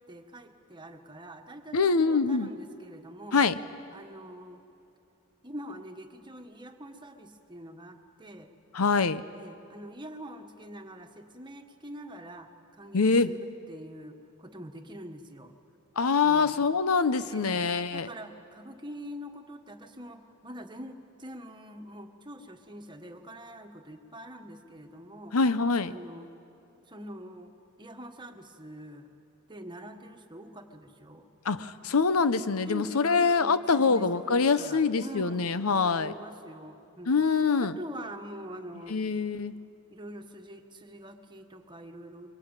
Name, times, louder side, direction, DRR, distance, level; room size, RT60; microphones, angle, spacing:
voice 1, 0.0-3.4 3.9-4.6 5.4-8.5 9.4-15.5 16.2-16.6 17.2-17.7 17.9-25.3 25.9-26.3 26.9-27.5 27.8-29.1 29.5-31.3 31.9-32.0 32.6-37.2 37.6-39.0 39.9-42.3, equal, 20° right, 5 dB, 1.5 m, -44 dB
voice 2, 1.7-2.5 3.3-3.6 8.7-9.2 12.9-13.3 16.0-18.1 25.3-25.9 31.4-36.1 37.1-37.7 38.9-39.5, left 4 dB, 90° left, 13 dB, 0.8 m, -24 dB
23.5 x 23.5 x 9.0 m, 2.7 s
head